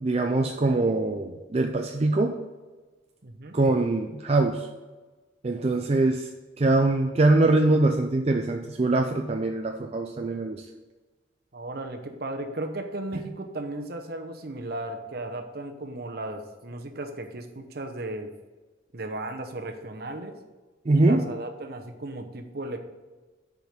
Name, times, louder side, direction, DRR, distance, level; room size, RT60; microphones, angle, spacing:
voice 1, 0.0-2.4 3.5-4.7 5.4-6.3 6.6-10.6 20.9-21.2, right 2 dB, 35° right, 3 dB, 0.4 m, -23 dB
voice 2, 3.2-3.6 11.5-18.3 18.9-20.4 20.9-22.8, right 2 dB, 55° right, 5 dB, 0.9 m, -35 dB
6.5 x 5.0 x 6.6 m, 1.3 s
head